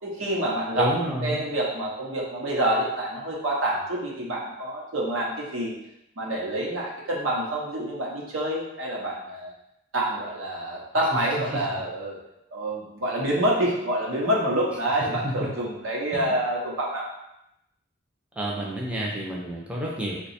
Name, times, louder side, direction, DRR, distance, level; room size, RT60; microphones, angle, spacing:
voice 1, 0.0-5.7 6.2-9.5 9.9-12.2 12.5-17.1, right 1 dB, 80° right, -3 dB, 0.9 m, -27 dB
voice 2, 0.8-1.4 11.1-11.2 11.5-11.6 15.2-15.3 16.1-16.3 18.4-20.3, equal, 5° right, -4 dB, 0.5 m, -29 dB
2.7 x 2.3 x 4.1 m, 0.84 s
head